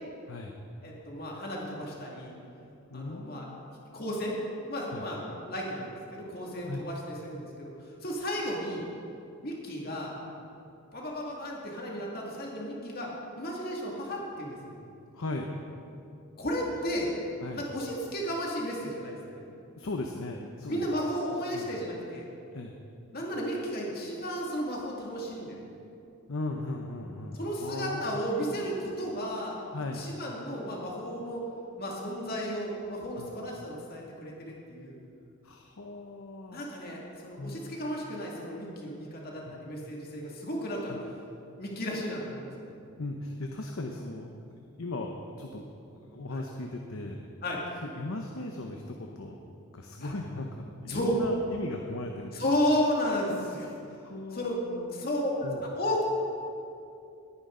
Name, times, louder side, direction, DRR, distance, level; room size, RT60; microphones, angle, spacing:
voice 1, 0.8-2.4 2.9-4.4 4.7-7.7 8.0-8.8 9.4-10.1 10.9-13.1 13.4-14.8 16.4-17.1 17.5-19.4 20.7-22.3 23.1-25.8 27.3-29.6 29.9-31.4 31.8-35.0 36.5-41.0 41.6-42.7 46.3-46.4 47.4-47.6 50.0-50.1 50.9-51.2 52.3-53.8 54.3-54.6 54.9-56.0, equal, 45° left, -3 dB, 2.3 m, -33 dB
voice 2, 2.9-3.6 4.9-5.0 6.6-6.9 15.1-15.6 17.4-17.7 19.8-20.9 21.5-21.7 22.5-22.7 26.3-28.2 28.5-29.0 29.7-30.1 33.2-33.3 35.4-36.7 37.4-37.6 39.4-39.6 40.9-41.0 43.0-45.6 45.9-47.2 47.8-49.3 49.7-52.3 54.0-55.1 55.4-55.6, left 2 dB, 70° left, 2 dB, 0.9 m, -38 dB
19.5 x 9.7 x 3.9 m, 2.6 s
head